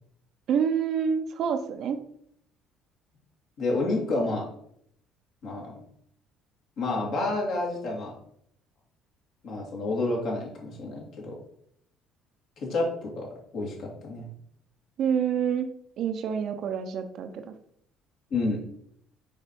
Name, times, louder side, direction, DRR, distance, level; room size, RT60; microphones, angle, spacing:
voice 1, 0.5-2.0 15.0-15.7 16.0-17.5, right 7 dB, 55° right, 8 dB, 0.8 m, -27 dB
voice 2, 3.6-4.5 5.4-5.7 6.8-8.1 9.4-11.4 12.6-14.2 18.3-18.6, left 2 dB, 55° left, -2 dB, 2.7 m, -29 dB
6.9 x 5.2 x 4.6 m, 0.69 s
figure-of-eight pair, 50°, 0 cm